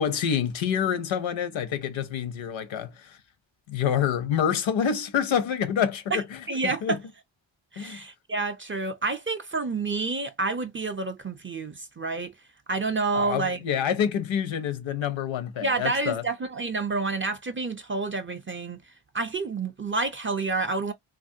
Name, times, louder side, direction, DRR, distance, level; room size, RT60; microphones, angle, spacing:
voice 1, 0.0-3.2 3.7-7.0 7.8-8.0 13.1-16.2, left 8 dB, 70° left, 0.7 m, -27 dB
voice 2, 6.1-7.0 7.7-12.3 12.7-13.6 15.6-18.8 19.1-20.9, right 3 dB, 25° right, 0.4 m, -29 dB
3.0 x 2.4 x 2.7 m
cardioid pair, 90°, 48 cm